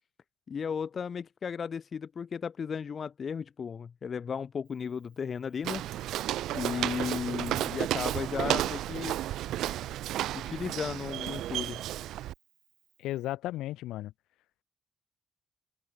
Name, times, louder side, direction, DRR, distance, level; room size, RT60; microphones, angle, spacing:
voice 1, 0.5-5.8 6.5-9.2 10.3-11.8, left 6 dB, 45° left, 0.8 m, -35 dB
Walk footsteps, 5.6-12.3, right 13 dB, 85° right, 0.3 m, -32 dB
voice 2, 13.0-14.1, left 15 dB, 90° left, 1.7 m, -34 dB
cardioid pair, 90°, 0 cm